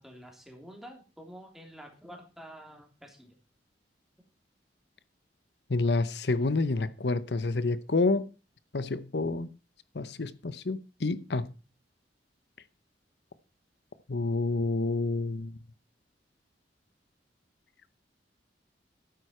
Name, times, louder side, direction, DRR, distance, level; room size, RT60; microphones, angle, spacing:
voice 1, 0.0-3.3, equal, ahead, 3.1 m, -48 dB
voice 2, 5.7-8.3 8.7-9.5 10.0-11.5 14.1-15.5, left 3 dB, 70° left, 0.8 m, -28 dB
12.5 x 9.7 x 4.4 m
head